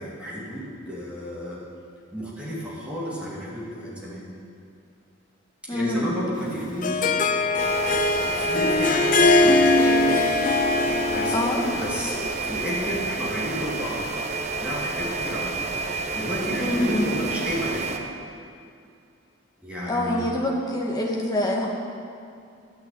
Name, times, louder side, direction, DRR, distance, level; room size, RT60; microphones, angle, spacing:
voice 1, 0.0-1.6 2.1-4.3 5.6-7.0 7.3-10.2 11.1-11.3 11.7-14.0 14.6-18.0 19.6-20.5, equal, 5° right, -6 dB, 2.8 m, -32 dB
voice 2, 5.7-6.1 11.3-11.6 16.6-17.1 19.9-21.7, left 1 dB, 20° left, -2 dB, 1.7 m, -25 dB
Harp, 6.4-11.7, left 2 dB, 45° left, 0.6 m, -21 dB
sound 1, 7.6-18.0, right 3 dB, 35° right, 0.8 m, -30 dB
13.0 x 6.2 x 8.7 m, 2.4 s
head